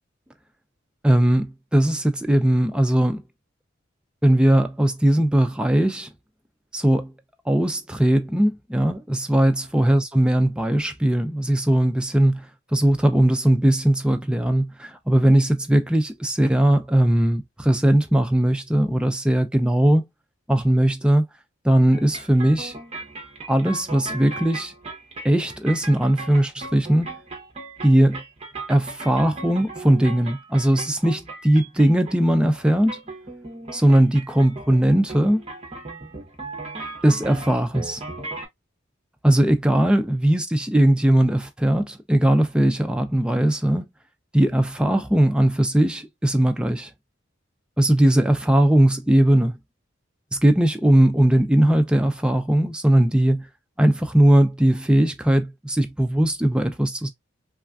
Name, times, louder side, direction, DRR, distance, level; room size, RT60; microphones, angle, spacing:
voice 1, 1.0-3.2 4.2-6.1 6.7-7.1 7.5-12.5 12.7-20.0 20.5-21.2 21.6-22.7 23.5-24.7 25.2-27.1 27.8-28.2 28.7-33.0 33.7-35.4 37.0-38.0 39.2-43.8 44.3-46.9 47.8-49.6 50.3-53.5 53.8-57.1, right 1 dB, 5° right, 0.3 m, -19 dB
sound 1, 21.9-38.5, right 2 dB, 30° right, 0.8 m, -37 dB
3.2 x 2.4 x 2.3 m
head